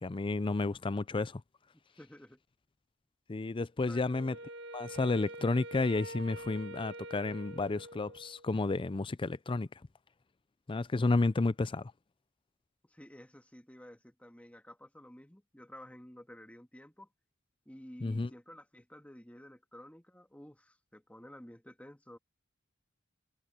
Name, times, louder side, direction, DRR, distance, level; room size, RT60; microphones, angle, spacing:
voice 1, 0.0-1.4 3.3-4.4 4.7-9.7 10.7-11.9 18.0-18.3, left 3 dB, 25° left, 0.5 m, -31 dB
voice 2, 2.0-2.4 3.9-4.0 12.8-17.1 17.7-22.2, equal, 5° left, 1.8 m, -52 dB
Wind instrument woodwind instrument, 4.1-8.5, right 1 dB, 60° right, 1.5 m, -46 dB
head